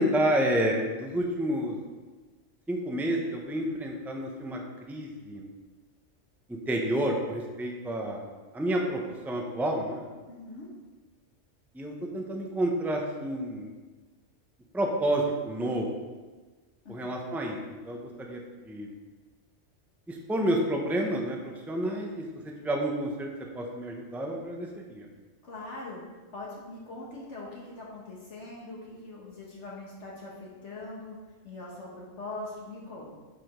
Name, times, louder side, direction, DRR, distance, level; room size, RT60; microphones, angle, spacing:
voice 1, 0.0-1.8 2.7-4.6 4.9-5.4 6.5-8.3 8.5-9.0 9.2-10.0 11.7-13.7 14.7-15.9 16.9-17.6 17.8-18.4 18.6-18.9 20.1-21.4 21.7-23.3 23.5-25.1, right 1 dB, ahead, 0 dB, 0.8 m, -29 dB
voice 2, 10.3-10.7 16.8-17.1 25.4-26.0 26.3-31.2 31.4-33.1, left 2 dB, 65° left, -5 dB, 1.6 m, -42 dB
7.7 x 5.1 x 5.1 m, 1.3 s
omnidirectional pair, 1.3 m